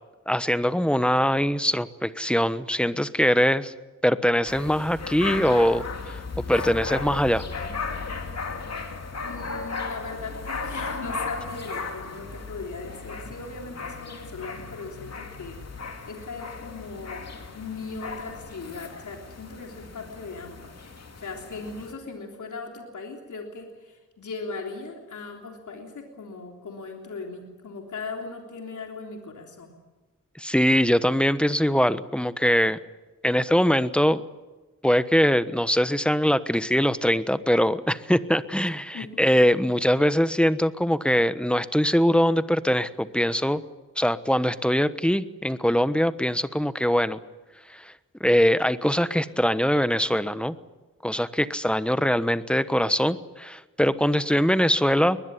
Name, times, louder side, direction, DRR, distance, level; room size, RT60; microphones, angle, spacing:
voice 1, 0.3-3.7 4.0-7.5 30.4-32.8 33.2-34.2 34.8-43.6 44.0-47.2 47.7-47.9 48.2-50.6 51.0-55.2, equal, 5° left, 13 dB, 1.1 m, -22 dB
sound 1, 4.5-21.9, left 4 dB, 60° left, 2.8 m, -36 dB
voice 2, 9.2-17.3 17.5-29.7 38.9-39.3, left 4 dB, 80° left, 2 dB, 3.5 m, -38 dB
22.0 x 20.5 x 9.9 m, 1.2 s
wide cardioid pair, 75°, 30 cm